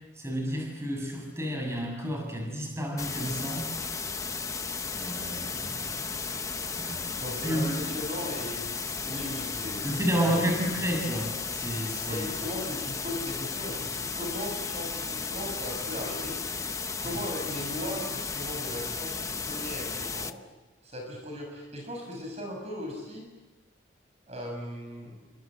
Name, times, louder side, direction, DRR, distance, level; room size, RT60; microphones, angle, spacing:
voice 1, 0.2-3.7 4.9-6.4 6.7-7.0 7.4-7.9 9.8-12.3 17.0-17.2, equal, 15° right, 1 dB, 7.1 m, -31 dB
sound 1, 3.0-20.3, left 5 dB, 15° left, 0.8 m, -34 dB
voice 2, 7.2-10.5 12.1-16.4 17.0-20.3 20.8-23.3 24.3-25.2, left 1 dB, 35° right, 2 dB, 6.6 m, -38 dB
30.0 x 26.0 x 7.6 m, 1.2 s
head